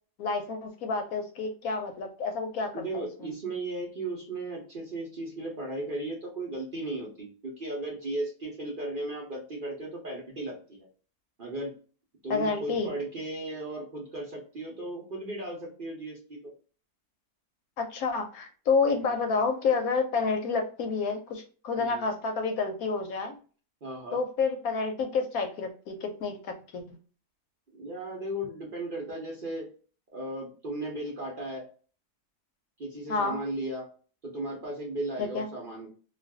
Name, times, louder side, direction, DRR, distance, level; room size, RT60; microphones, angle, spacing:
voice 1, 0.2-3.3 12.3-12.9 17.8-23.4 24.1-27.0 33.1-33.4 35.2-35.5, left 4 dB, 70° left, 5 dB, 1.0 m, -29 dB
voice 2, 2.7-10.9 11.4-11.7 12.2-16.5 19.0-19.2 21.7-22.1 23.8-24.2 27.7-29.7 30.1-31.6 32.8-33.9 34.2-35.9, right 1 dB, 45° right, -3 dB, 0.8 m, -36 dB
2.5 x 2.5 x 3.4 m, 0.39 s
omnidirectional pair, 1.6 m